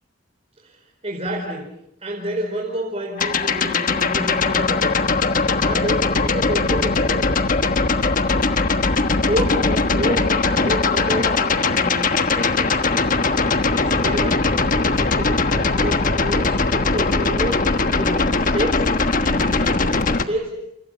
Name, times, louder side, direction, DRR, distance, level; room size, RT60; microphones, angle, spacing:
voice 1, 0.6-1.7 2.0-5.0 5.6-7.4 9.2-13.3 13.7-14.6 14.8-18.9 19.2-20.6, equal, 35° right, -1 dB, 5.1 m, -29 dB
sound 1, 3.2-20.2, left 3 dB, 45° left, 1.4 m, -20 dB
30.0 x 29.0 x 5.8 m, 0.78 s
head